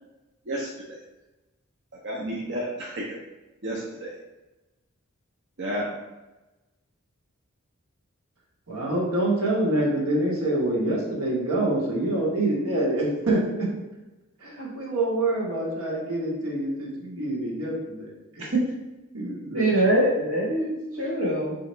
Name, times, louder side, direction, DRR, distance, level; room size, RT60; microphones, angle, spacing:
voice 1, 0.5-1.0 2.0-3.2 3.6-4.1 5.6-5.9, equal, 55° right, -4 dB, 0.6 m, -31 dB
voice 2, 8.7-13.7 14.4-18.1 18.3-18.5 19.1-19.7, right 1 dB, 85° right, -4 dB, 1.3 m, -26 dB
voice 3, 19.5-21.5, right 1 dB, 70° right, -4 dB, 1.4 m, -23 dB
3.5 x 2.9 x 4.3 m, 1.1 s
head